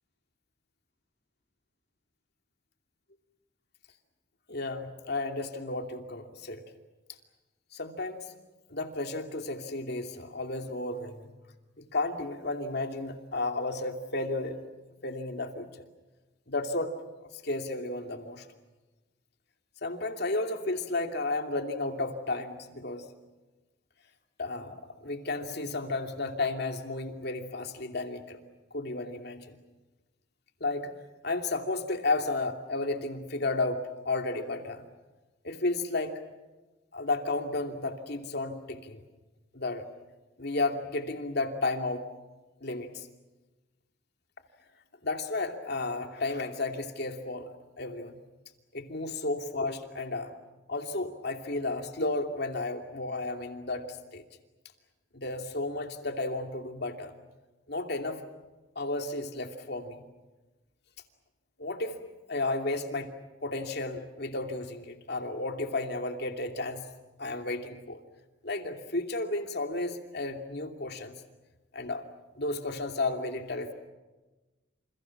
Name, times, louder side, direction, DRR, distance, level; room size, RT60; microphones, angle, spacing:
voice 1, 4.5-6.6 7.7-8.2 8.7-11.3 11.8-14.7 15.0-15.7 16.5-16.9 17.4-18.4 19.8-23.1 24.4-28.4 28.7-29.6 30.6-30.9 31.2-34.9 35.4-36.1 36.9-39.0 39.5-39.8 40.4-42.0 42.6-43.1 45.0-47.5 47.8-48.2 48.7-50.3 50.7-54.2 55.1-57.1 57.7-58.2 58.8-60.0 61.6-62.0 62.3-63.1 63.4-66.9 67.2-68.0 68.4-71.1 71.7-72.0 72.4-73.7, left 2 dB, 55° left, 5 dB, 2.7 m, -33 dB
29.0 x 29.0 x 6.0 m, 1.2 s
head